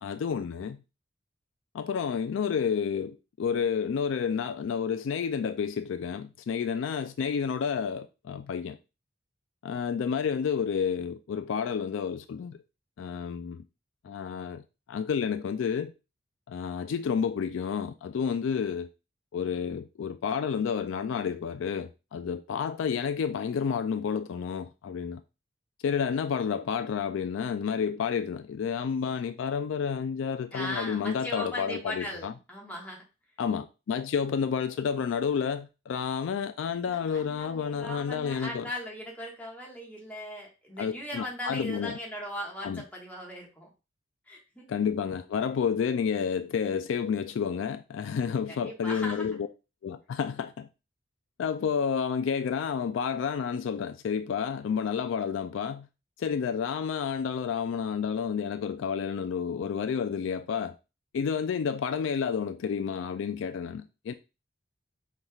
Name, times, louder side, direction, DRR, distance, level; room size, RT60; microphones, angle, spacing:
voice 1, 0.0-0.8 1.7-8.8 9.6-12.6 13.0-13.6 14.0-14.6 14.9-15.9 16.5-18.9 19.3-25.2 25.8-32.3 33.4-38.7 40.8-42.0 42.6-42.8 44.7-49.5 49.8-50.7 51.4-55.9 56.2-60.8 61.1-64.1, left 6 dB, 75° left, 0.3 m, -30 dB
voice 2, 30.5-33.0 36.8-43.7 44.3-44.7 48.5-49.3, left 1 dB, 10° left, 1.4 m, -38 dB
5.5 x 3.3 x 2.3 m
head